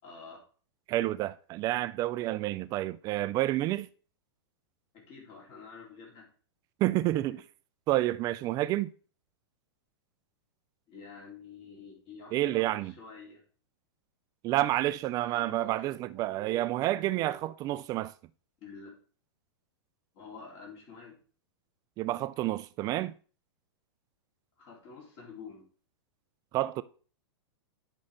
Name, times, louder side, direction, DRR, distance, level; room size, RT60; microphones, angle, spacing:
voice 1, 0.0-0.4 4.9-6.3 7.3-7.4 10.9-13.4 15.2-15.8 18.6-18.9 20.1-21.2 24.6-25.7, left 5 dB, 40° left, 4.0 m, -48 dB
voice 2, 0.9-3.9 6.8-7.4 7.9-8.9 12.3-12.9 14.4-18.1 22.0-23.1 26.5-26.8, right 15 dB, 25° right, 0.3 m, -29 dB
10.5 x 5.5 x 3.8 m
hypercardioid pair, 140°, 14 cm